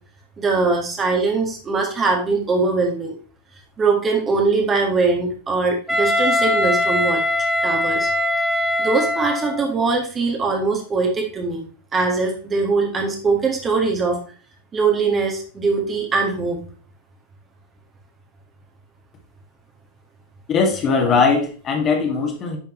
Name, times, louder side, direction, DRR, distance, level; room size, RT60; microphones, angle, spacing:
voice 1, 0.4-3.2 3.8-7.2 7.6-8.1 8.8-11.6 11.9-14.2 14.7-16.6, right 4 dB, 20° right, 1 dB, 1.7 m, -21 dB
Wind instrument woodwind instrument, 5.9-9.7, left 1 dB, ahead, 2.3 m, -21 dB
voice 2, 20.5-22.6, left 4 dB, 30° left, 2 dB, 1.9 m, -19 dB
10.0 x 5.6 x 3.1 m, 0.41 s
figure-of-eight pair, 90°, 0 cm